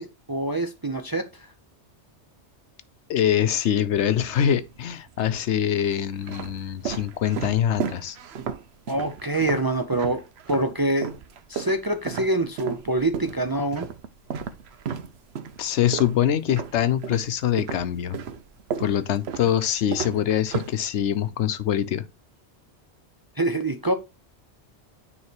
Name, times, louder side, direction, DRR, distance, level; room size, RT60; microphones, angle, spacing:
voice 1, 0.0-1.5 8.9-11.1 11.5-13.9 23.4-23.9, right 2 dB, 30° right, 0.4 m, -25 dB
voice 2, 3.1-8.2 15.6-18.2 18.8-22.0, left 10 dB, 80° left, 1.0 m, -24 dB
sound 1, 4.2-4.9 5.6-10.7 11.0-17.3 17.6-21.3, right 7 dB, 70° right, 0.9 m, -34 dB
9.5 x 3.2 x 4.4 m
omnidirectional pair, 1.2 m